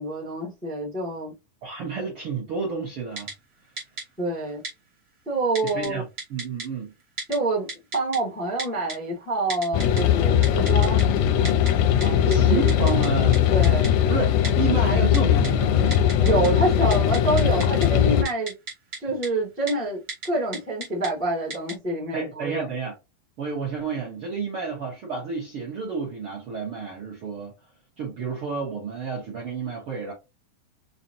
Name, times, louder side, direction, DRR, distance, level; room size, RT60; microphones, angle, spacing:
voice 1, 0.0-1.3 4.2-4.6 5.2-6.0 7.3-11.0 12.0-12.6 13.5-13.9 16.2-18.5 19.0-22.6, right 2 dB, 10° left, 0.5 m, -27 dB
voice 2, 1.6-3.3 5.6-6.0 6.3-6.9 12.2-13.4 14.1-16.0 22.1-22.9 23.4-27.5 28.0-30.1, right 5 dB, 65° right, 1.3 m, -30 dB
Typing, 3.2-3.3 3.8-4.0 4.6-4.7 5.5-5.9 6.2-6.6 7.2-7.4 7.7-8.2 8.6-8.9 9.5-10.0 10.4-11.0 11.4-11.7 12.0-12.1 12.3-12.4 12.7-13.1 13.3-13.4 13.6-13.9 14.4-14.5 15.1-15.5 15.9-16.5 16.8-17.9 18.2-19.0 19.2-19.3 19.7-19.8 20.1-20.3 20.5-21.1 21.5-21.7, right 3 dB, 80° right, 0.8 m, -33 dB
sound 1, 9.7-18.2, left 10 dB, 80° left, 1.8 m, -20 dB
5.7 x 2.3 x 2.7 m
omnidirectional pair, 4.1 m